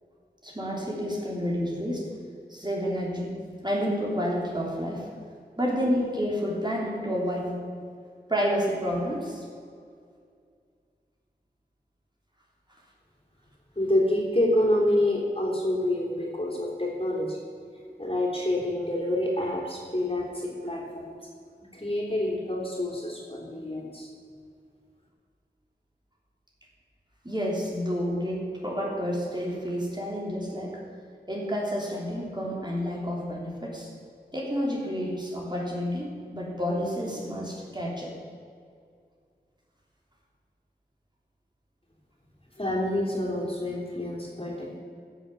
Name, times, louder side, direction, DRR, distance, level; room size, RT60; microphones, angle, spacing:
voice 1, 0.4-2.0 2.5-3.3 3.6-5.1 5.6-7.5 8.3-9.4 27.2-30.8 31.3-33.9 34.3-38.1, equal, 25° right, -3 dB, 3.2 m, -29 dB
voice 2, 13.7-17.4 17.7-21.3 21.7-24.1 42.6-44.8, left 1 dB, 35° left, -3 dB, 3.3 m, -27 dB
14.5 x 7.2 x 7.0 m, 2.2 s
wide cardioid pair, 50°, 17 cm